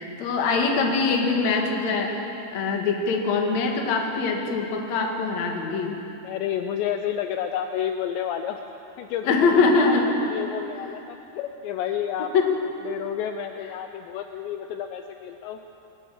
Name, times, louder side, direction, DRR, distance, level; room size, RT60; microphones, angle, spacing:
voice 1, 0.0-2.2 2.5-6.0 9.2-10.4 12.2-12.6, left 4 dB, 50° left, 2 dB, 2.4 m, -23 dB
voice 2, 6.2-8.6 9.0-12.3 12.8-15.6, left 9 dB, 80° left, 6 dB, 2.8 m, -30 dB
20.5 x 19.0 x 7.4 m, 3.0 s
omnidirectional pair, 5.4 m